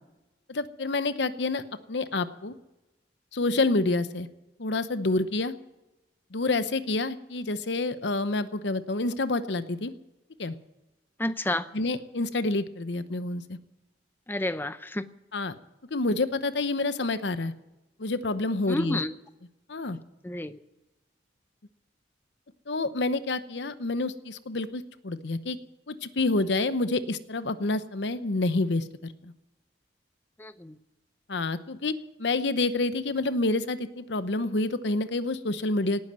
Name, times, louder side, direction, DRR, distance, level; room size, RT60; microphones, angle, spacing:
voice 1, 0.5-1.6 1.9-2.5 3.3-4.3 4.6-5.5 6.3-9.9 10.4-10.6 11.7-13.6 15.3-15.6 15.9-17.5 18.0-19.0 19.7-20.0 22.7-25.6 25.9-29.3 31.3-36.0, left 2 dB, 70° left, 13 dB, 0.9 m, -28 dB
voice 2, 11.2-11.7 14.3-15.1 18.7-19.1 20.2-20.6 30.4-30.8, left 1 dB, 10° left, 13 dB, 0.6 m, -30 dB
18.5 x 9.8 x 7.5 m, 1.0 s
head